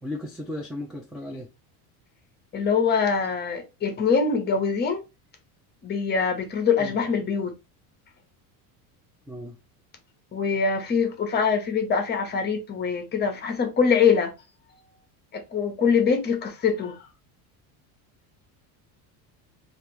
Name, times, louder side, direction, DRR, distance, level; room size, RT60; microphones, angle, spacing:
voice 1, 0.0-1.5 6.8-7.0 9.3-9.6, left 1 dB, ahead, 0.3 m, -35 dB
voice 2, 2.5-5.0 5.8-7.5 10.3-14.3 15.3-17.0, left 6 dB, 25° left, 0.7 m, -23 dB
3.3 x 2.6 x 2.9 m
cardioid pair, 145°, 43 cm